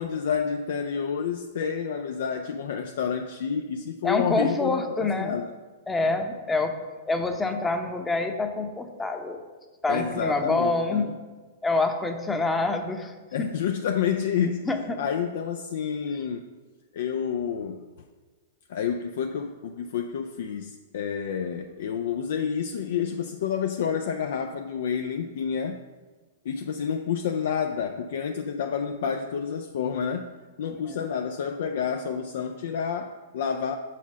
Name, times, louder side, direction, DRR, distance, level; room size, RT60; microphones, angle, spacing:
voice 1, 0.0-5.5 9.9-11.1 13.3-14.7 15.0-16.4 16.9-17.8 18.7-25.8 26.4-30.3 30.6-33.8, left 7 dB, 65° left, 5 dB, 0.4 m, -29 dB
voice 2, 4.0-5.4 5.9-6.7 7.1-9.4 9.8-11.1 11.6-13.5 14.6-15.0 30.9-31.1, left 3 dB, 10° left, 5 dB, 0.7 m, -26 dB
6.0 x 4.2 x 6.0 m, 1.3 s
figure-of-eight pair, 105°, 0 cm